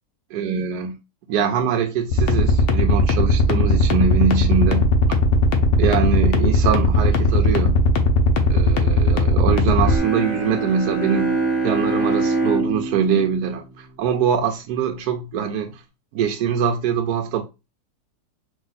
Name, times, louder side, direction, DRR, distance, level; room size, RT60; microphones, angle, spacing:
voice 1, 0.3-1.0 1.3-4.9 5.8-7.8 8.5-15.8 16.1-17.4, right 7 dB, 75° right, 1.1 m, -23 dB
sound 1, 2.1-9.9, left 2 dB, 60° left, 0.6 m, -17 dB
Bowed string instrument, 9.7-14.6, right 3 dB, 45° left, 1.2 m, -25 dB
3.5 x 2.7 x 3.9 m
omnidirectional pair, 1.8 m